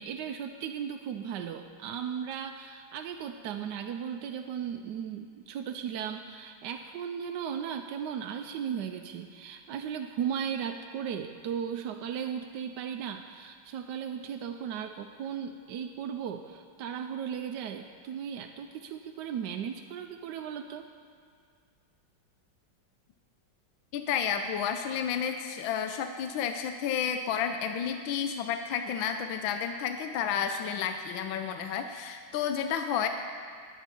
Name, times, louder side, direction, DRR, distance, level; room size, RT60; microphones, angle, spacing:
voice 1, 0.0-20.9, right 8 dB, 70° right, 5 dB, 1.1 m, -36 dB
voice 2, 23.9-33.1, left 7 dB, 75° left, 7 dB, 1.4 m, -31 dB
20.5 x 8.0 x 4.4 m, 2.1 s
omnidirectional pair, 2.2 m